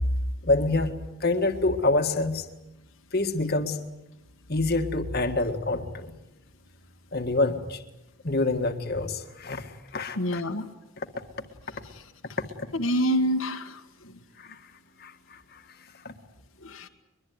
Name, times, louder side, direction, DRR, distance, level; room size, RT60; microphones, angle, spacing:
voice 1, 0.4-2.5 3.1-3.8 4.5-6.1 7.1-7.8 8.2-10.4 11.0-11.1 12.6-12.7 14.4-14.6 15.0-15.6 16.0-16.1, left 2 dB, 45° left, 5 dB, 1.9 m, -27 dB
voice 2, 10.2-10.7 12.7-14.1 16.6-16.9, equal, 70° left, 4 dB, 1.7 m, -27 dB
23.0 x 22.5 x 9.6 m, 0.97 s
head